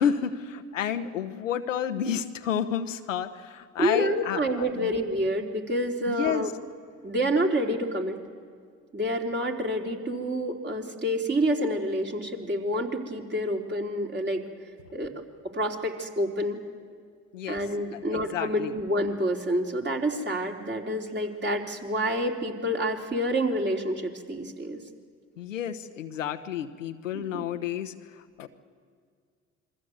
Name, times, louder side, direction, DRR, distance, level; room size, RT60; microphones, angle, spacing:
voice 1, 0.0-4.9 6.1-6.5 17.3-17.6 17.9-18.8 25.4-28.5, left 8 dB, 90° left, 8 dB, 1.0 m, -31 dB
voice 2, 3.8-6.5 7.0-8.2 8.9-14.4 14.9-15.1 15.5-16.6 17.5-24.8 27.1-27.5, equal, 30° right, 1 dB, 3.5 m, -28 dB
27.0 x 22.5 x 8.0 m, 2.1 s
hypercardioid pair, 55°, 37 cm